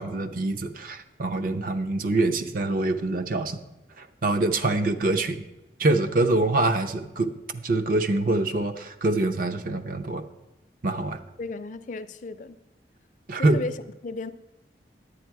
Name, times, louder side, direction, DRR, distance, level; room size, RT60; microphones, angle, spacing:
voice 1, 0.0-3.6 4.0-5.4 5.8-10.2 10.8-11.2 13.3-13.6, right 2 dB, 50° right, 0.6 m, -25 dB
voice 2, 11.4-12.6 13.4-14.3, left 3 dB, 45° left, 0.4 m, -35 dB
10.0 x 8.7 x 4.6 m
head